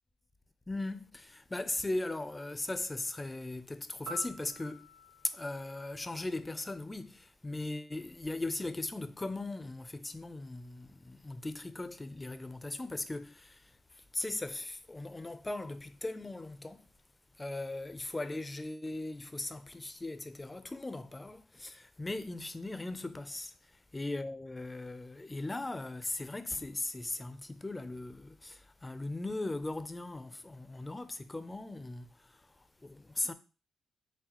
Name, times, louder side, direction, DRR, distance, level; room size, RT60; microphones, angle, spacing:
voice 1, 0.7-4.9 5.2-16.9 17.4-33.3, left 2 dB, 15° left, 0.4 m, -39 dB
Piano, 4.1-7.0 15.1-15.3, equal, 50° right, 0.6 m, -49 dB
6.0 x 2.3 x 3.0 m
cardioid pair, 90°, 0 cm